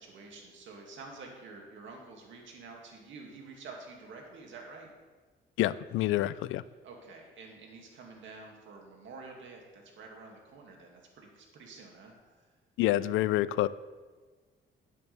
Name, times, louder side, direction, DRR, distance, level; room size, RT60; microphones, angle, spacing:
voice 1, 0.0-4.9 6.8-12.5, right 3 dB, 75° right, 0 dB, 2.4 m, -49 dB
voice 2, 5.6-6.6 12.8-13.7, left 15 dB, 85° left, 17 dB, 0.4 m, -27 dB
12.0 x 9.8 x 3.5 m, 1.4 s
cardioid pair, 90°, 20 cm